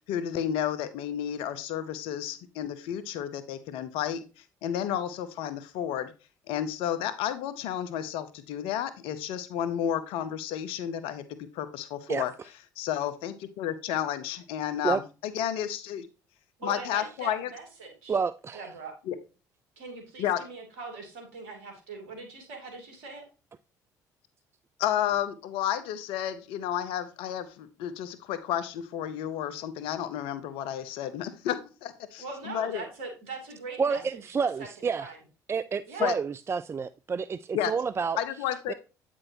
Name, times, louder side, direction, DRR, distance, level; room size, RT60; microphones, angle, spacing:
voice 1, 0.1-6.1 6.5-12.3 12.8-16.1 16.6-17.5 19.1-19.2 20.2-20.4 24.8-32.8 36.0-36.2 37.5-37.7 38.2-38.7, left 10 dB, 70° left, 0.7 m, -31 dB
voice 2, 16.6-18.2 18.5-18.9 19.8-23.2 32.2-34.0 34.6-35.2 35.9-36.2, right 3 dB, 75° right, 2.6 m, -41 dB
voice 3, 18.1-18.6 33.8-35.1 35.5-38.2 38.7-38.8, right 5 dB, 25° right, 0.3 m, -29 dB
8.7 x 6.1 x 2.7 m
hypercardioid pair, 60°, 10 cm